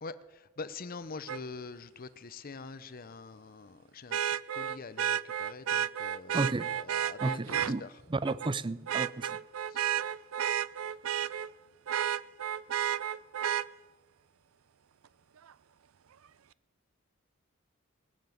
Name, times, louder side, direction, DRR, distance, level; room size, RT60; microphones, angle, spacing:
voice 1, 0.0-7.9 9.7-9.8, left 4 dB, 45° left, 14 dB, 0.7 m, -45 dB
Vehicle horn car horn honking, 1.3-1.4 4.1-7.7 8.3-8.5 8.9-11.5 11.9-13.7 15.5-15.6, right 10 dB, 85° right, 0.5 m, -32 dB
voice 2, 6.3-6.7 7.2-9.4, right 3 dB, 25° right, 17 dB, 0.5 m, -33 dB
20.5 x 7.1 x 9.4 m, 1.2 s
head